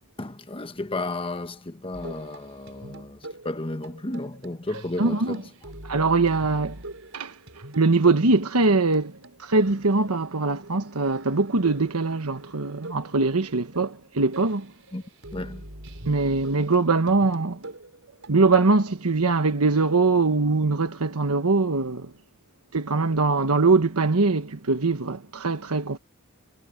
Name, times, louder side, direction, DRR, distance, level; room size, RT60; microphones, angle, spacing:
voice 1, 0.2-5.4 14.9-15.0 15.3-15.6, left 2 dB, 25° left, 1.1 m, -33 dB
sound 1, 1.9-18.7, right 1 dB, 60° right, 6.1 m, -44 dB
voice 2, 5.0-5.4 5.8-6.8 7.1-7.4 7.7-14.7 16.0-17.6 18.3-22.1 22.7-26.0, right 3 dB, 75° right, 1.3 m, -22 dB
head